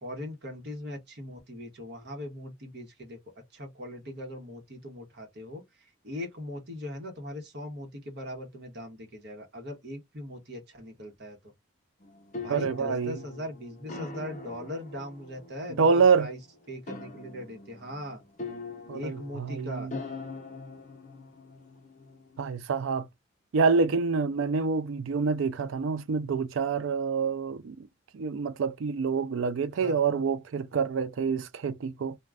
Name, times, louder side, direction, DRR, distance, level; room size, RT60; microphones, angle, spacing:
voice 1, 0.0-3.2 3.5-5.6 6.0-11.4 12.4-15.9 16.2-16.4 16.7-18.2 18.9-19.9 29.7-29.9, left 1 dB, 55° right, 1.0 m, -40 dB
sound 1, 12.0-22.5, left 3 dB, 40° left, 0.6 m, -43 dB
voice 2, 12.5-13.2 15.8-16.3 18.9-20.0 22.4-23.1 23.5-27.9 28.1-32.2, right 5 dB, 75° right, 0.4 m, -27 dB
2.4 x 2.2 x 3.3 m
head